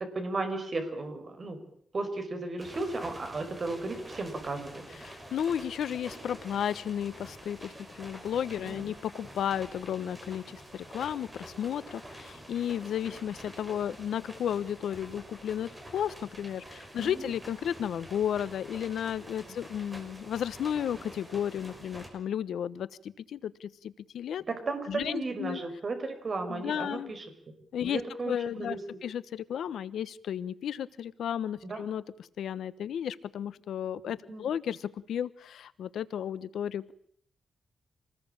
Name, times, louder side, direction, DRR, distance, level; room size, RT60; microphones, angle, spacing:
voice 1, 0.1-1.6 1.9-4.8 8.6-8.9 17.0-17.3 24.5-27.3 27.8-28.8 31.6-31.8 34.3-34.5, right 3 dB, 35° right, 6 dB, 5.2 m, -35 dB
sound 1, 2.6-22.1, right 1 dB, 10° right, 5.8 m, -47 dB
voice 2, 5.0-24.4 24.9-25.6 26.5-27.1 27.7-28.8 29.0-32.0 32.4-36.9, left 9 dB, 85° left, 16 dB, 1.1 m, -33 dB
27.0 x 20.0 x 8.8 m, 0.66 s
wide cardioid pair, 175°, 0 cm